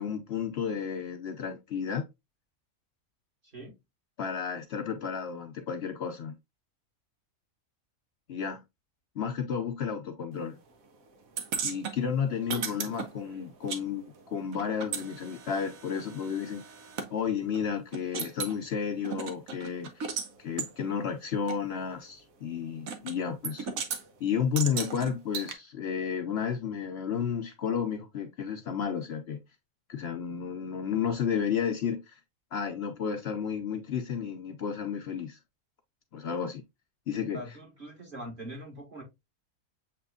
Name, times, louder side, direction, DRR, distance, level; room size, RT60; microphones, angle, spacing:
voice 1, 0.0-2.1 4.2-6.3 8.3-8.6 9.2-10.6 11.6-16.6 17.1-20.1 20.4-23.8 24.2-29.4 29.9-32.2 32.5-35.4 36.1-36.6 37.1-37.4, left 7 dB, 60° left, 0.8 m, -32 dB
sound 1, 11.4-13.8 14.1-17.1 17.5-17.6 17.9-18.6 19.0-20.3 20.6-20.7 21.5-21.6 22.9-23.2 23.4-24.0 24.6-25.5, right 6 dB, 80° right, 1.3 m, -36 dB
voice 2, 37.3-39.0, right 1 dB, 40° right, 1.7 m, -42 dB
7.5 x 3.0 x 2.3 m
omnidirectional pair, 1.4 m